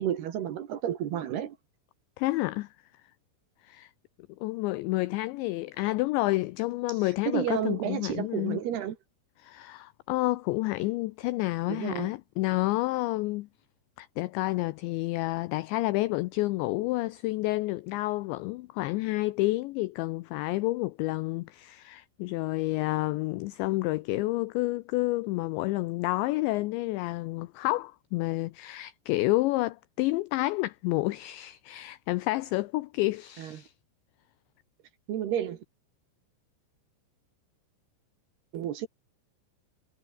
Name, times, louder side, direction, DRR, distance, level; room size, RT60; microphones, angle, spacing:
voice 1, 0.0-1.6 7.3-9.0 11.7-12.1 33.4-33.6 35.1-35.6 38.5-38.9, right 10 dB, 60° right, 3.2 m, -31 dB
voice 2, 2.2-2.7 3.6-3.9 4.4-8.6 9.4-13.5 14.0-33.7, left 19 dB, 85° left, 2.5 m, -29 dB
omnidirectional pair, 6.0 m